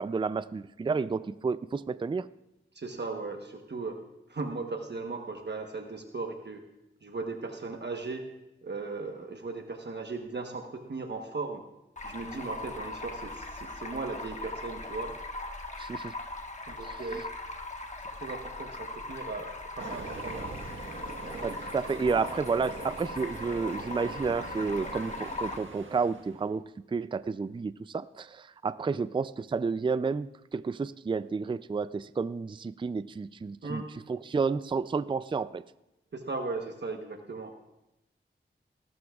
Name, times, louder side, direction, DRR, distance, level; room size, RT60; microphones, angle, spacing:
voice 1, 0.0-2.3 15.8-16.1 16.8-17.2 21.4-26.6 26.9-33.8 34.1-35.6, right 5 dB, 25° right, 16 dB, 0.4 m, -31 dB
voice 2, 2.7-4.0 4.3-6.7 7.0-8.3 8.6-11.6 12.0-15.1 16.7-17.2 18.0-20.5 33.6-33.9 36.1-37.6, right 3 dB, 60° right, 4 dB, 1.1 m, -37 dB
Stream, 12.0-25.6, left 2 dB, 35° left, 1.4 m, -40 dB
Train, 19.8-26.5, right 3 dB, 75° right, 1.4 m, -42 dB
18.0 x 12.5 x 2.4 m, 0.91 s
cardioid pair, 45°, 20 cm